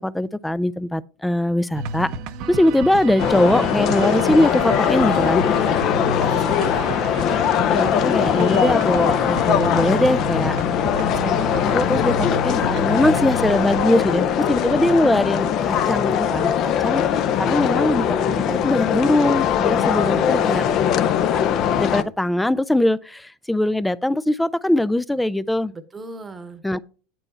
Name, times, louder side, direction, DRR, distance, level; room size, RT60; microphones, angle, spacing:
voice 1, 0.0-2.1 2.5-5.5 6.3-6.4 7.7-10.6 11.2-17.0 17.4-20.6 21.3-21.5 21.8-25.7 26.6-26.8, left 1 dB, 5° left, 0.3 m, -21 dB
sound 1, 1.7-18.8, right 3 dB, 60° right, 0.7 m, -32 dB
sound 2, 3.2-22.0, left 9 dB, 45° left, 0.6 m, -21 dB
voice 2, 5.9-7.0 19.7-20.8 25.7-26.6, right 3 dB, 20° right, 1.0 m, -38 dB
8.6 x 4.6 x 4.3 m
supercardioid pair, 105°, 0 cm